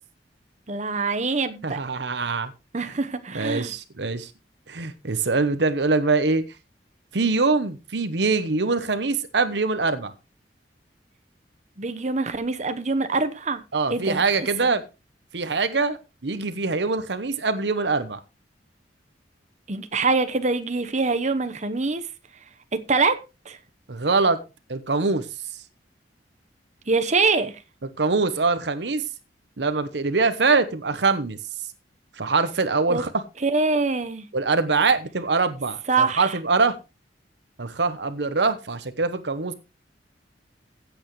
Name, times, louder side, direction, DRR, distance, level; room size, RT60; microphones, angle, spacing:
voice 1, 0.7-1.8 2.7-3.7 11.8-13.6 13.9-14.7 19.7-22.1 22.7-23.6 26.9-27.6 32.9-33.0 33.4-34.3 35.9-36.4, right 4 dB, 40° right, 1.0 m, -24 dB
voice 2, 1.6-2.5 3.3-4.3 4.7-6.4 7.1-10.1 13.7-14.8 15.3-18.2 23.9-24.4 24.7-25.2 28.0-29.0 29.6-31.4 32.2-33.2 34.3-36.8 37.6-39.5, right 4 dB, 70° right, 0.9 m, -23 dB
15.5 x 8.1 x 3.1 m
head